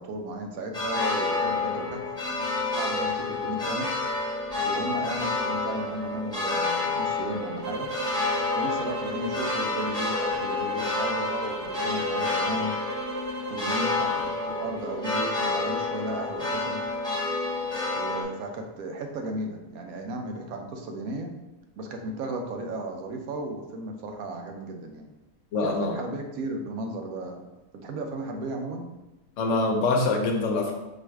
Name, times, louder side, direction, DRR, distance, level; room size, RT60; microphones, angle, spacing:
voice 1, 0.0-2.0 2.7-3.9 4.6-7.9 8.5-12.8 13.5-16.8 18.0-21.3 21.8-25.1 25.6-27.4 27.7-28.9, right 1 dB, 85° right, 3 dB, 1.1 m, -35 dB
sound 1, 0.7-18.2, left 3 dB, 5° left, 1.2 m, -29 dB
sound 2, 7.6-14.4, right 2 dB, 60° right, 0.6 m, -36 dB
voice 2, 25.5-26.0 29.4-30.7, left 3 dB, 65° left, 2 dB, 1.0 m, -24 dB
4.6 x 2.5 x 4.5 m, 1.0 s
omnidirectional pair, 1.5 m